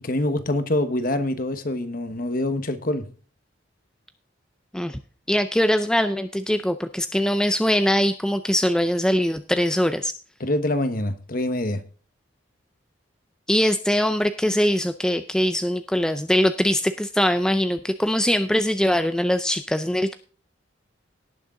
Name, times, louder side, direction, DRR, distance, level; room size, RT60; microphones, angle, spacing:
voice 1, 0.0-3.1 10.4-11.8, left 1 dB, 45° left, 1.2 m, -25 dB
voice 2, 5.3-10.1 13.5-20.1, equal, 5° left, 0.4 m, -22 dB
18.0 x 6.5 x 3.7 m
head